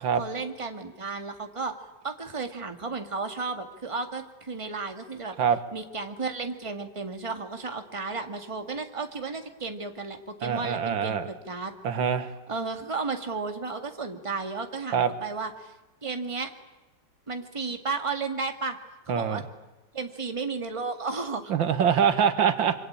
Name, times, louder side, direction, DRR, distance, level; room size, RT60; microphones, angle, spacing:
voice 1, 0.2-1.7 2.0-5.3 5.7-11.7 12.5-15.7 16.0-16.5 17.3-18.8 19.1-19.4 19.9-21.5, right 4 dB, 15° right, 6 dB, 1.9 m, -33 dB
voice 2, 10.4-11.3 11.8-12.3 14.9-15.1 19.1-19.4 21.5-22.8, right 7 dB, 90° right, 10 dB, 2.3 m, -24 dB
26.0 x 25.0 x 8.7 m, 1.1 s
omnidirectional pair, 2.1 m